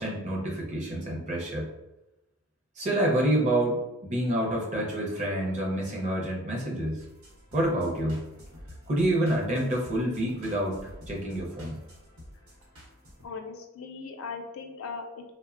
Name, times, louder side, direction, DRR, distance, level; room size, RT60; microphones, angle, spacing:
voice 1, 0.0-1.7 2.8-7.0 7.5-8.3 8.9-11.8, right 1 dB, 35° right, -2 dB, 0.6 m, -28 dB
sound 1, 7.0-13.3, equal, 85° right, 0.9 m, -49 dB
voice 2, 13.2-15.3, left 4 dB, 65° left, 4 dB, 0.3 m, -39 dB
3.1 x 2.1 x 2.4 m, 0.95 s
head